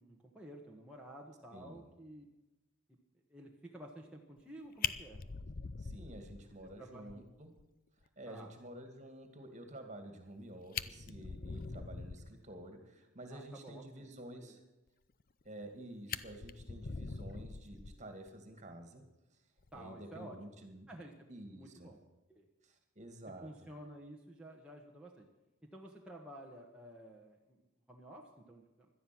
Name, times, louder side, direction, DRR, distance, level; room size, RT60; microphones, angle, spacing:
voice 1, 0.0-2.3 2.9-3.0 3.3-5.2 6.4-7.2 8.3-8.5 13.3-14.1 14.3-14.6 19.7-20.4 20.9-22.0 22.3-22.5 23.4-25.3 25.7-28.9, right 1 dB, 5° right, -2 dB, 1.4 m, -52 dB
voice 2, 1.5-1.9 5.8-7.5 8.2-14.6 15.4-19.0 19.7-20.9 21.3-21.9 22.6-23.5, right 1 dB, 35° right, 6 dB, 2.4 m, -50 dB
Fire, 4.4-4.5 4.8-6.7 7.1-7.2 7.6-7.7 8.0-8.1 10.3-10.4 10.6-12.4 15.2-15.7 16.1-18.3 19.6-19.8, left 6 dB, 40° left, 0.6 m, -42 dB
17.5 x 12.5 x 6.2 m, 1.0 s
head